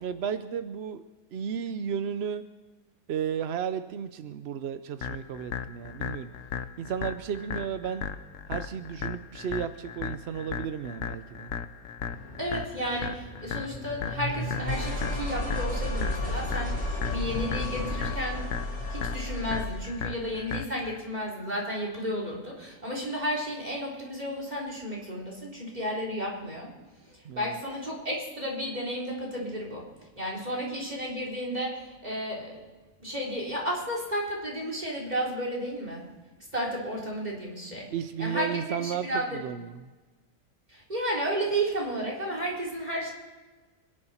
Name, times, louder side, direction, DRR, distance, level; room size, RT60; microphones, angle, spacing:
voice 1, 0.0-1.0 1.3-2.4 3.1-6.3 6.8-8.1 8.5-11.5 27.2-27.6 37.9-39.8, right 8 dB, 65° right, 11 dB, 0.6 m, -33 dB
sound 1, 5.0-21.0, left 7 dB, 60° left, 1.0 m, -37 dB
sound 2, 12.1-19.9, left 1 dB, 35° left, 3.4 m, -33 dB
voice 2, 12.4-18.5 18.9-26.7 27.0-29.9 30.2-32.6 33.0-36.1 36.5-37.9 38.2-39.4 40.7-43.1, equal, 25° right, -2 dB, 4.1 m, -32 dB
26.0 x 11.0 x 4.4 m, 1.3 s
omnidirectional pair, 1.8 m